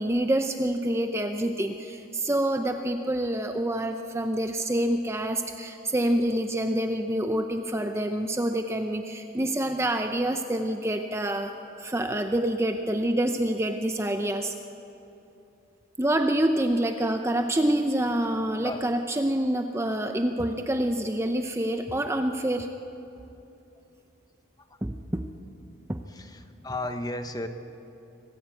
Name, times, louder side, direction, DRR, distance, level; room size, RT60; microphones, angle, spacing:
voice 1, 0.0-11.5 11.8-14.5 16.0-22.7 24.8-25.3 25.9-26.0, right 1 dB, 15° right, 6 dB, 0.6 m, -27 dB
voice 2, 26.1-27.5, left 2 dB, 20° left, 8 dB, 1.0 m, -34 dB
25.0 x 15.5 x 8.4 m, 2.9 s
head